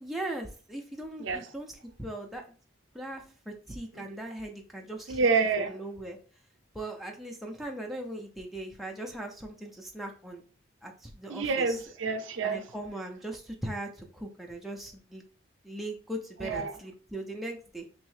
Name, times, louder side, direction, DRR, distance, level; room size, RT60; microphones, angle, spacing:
voice 1, 0.0-2.4 2.9-5.2 5.6-6.2 6.7-10.4 10.8-11.8 12.4-15.2 15.6-17.9, right 1 dB, ahead, 0.4 m, -39 dB
voice 2, 5.1-5.8 11.3-12.6 16.4-16.7, right 4 dB, 70° right, 0.5 m, -28 dB
3.1 x 2.7 x 3.1 m
head